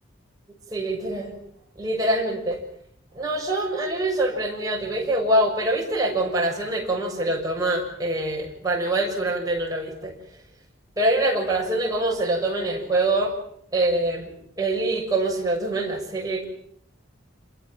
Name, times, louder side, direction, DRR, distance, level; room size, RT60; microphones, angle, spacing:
voice 1, 0.7-1.3 1.8-2.6 3.1-10.1 11.0-13.3 13.7-14.3 14.6-16.4, right 1 dB, 20° right, -1 dB, 6.8 m, -24 dB
27.5 x 22.5 x 7.5 m, 0.67 s
head